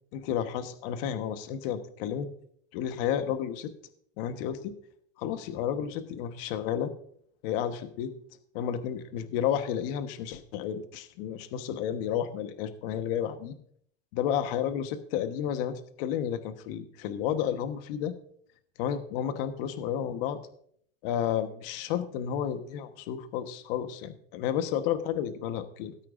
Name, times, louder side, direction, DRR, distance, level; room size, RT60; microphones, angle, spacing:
voice 1, 0.1-2.3 2.7-3.7 4.2-4.7 5.2-6.9 7.4-8.1 8.5-13.5 14.1-18.1 18.8-20.4 21.0-25.9, left 9 dB, 55° left, 9 dB, 1.2 m, -31 dB
18.0 x 8.9 x 2.5 m, 0.64 s
supercardioid pair, 140°, 33 cm